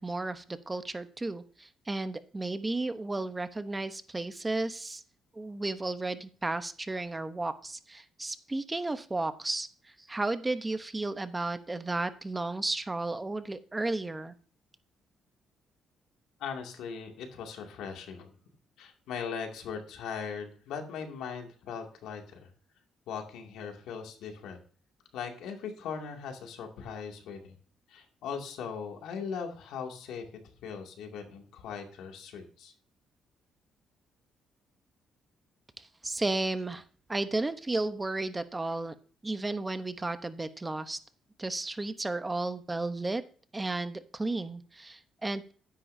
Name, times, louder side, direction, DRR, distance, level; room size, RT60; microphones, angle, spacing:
voice 1, 0.0-5.0 5.3-9.7 10.0-14.3 36.0-36.8 37.1-38.9 39.2-41.0 41.4-43.2 43.5-45.5, right 2 dB, 20° right, 11 dB, 0.9 m, -33 dB
voice 2, 16.4-18.3 18.8-22.5 23.1-24.6 25.1-27.6 27.9-30.3 30.6-32.7, left 6 dB, 85° left, 3 dB, 2.4 m, -39 dB
12.0 x 10.0 x 2.7 m, 0.43 s
cardioid pair, 90°, 0 cm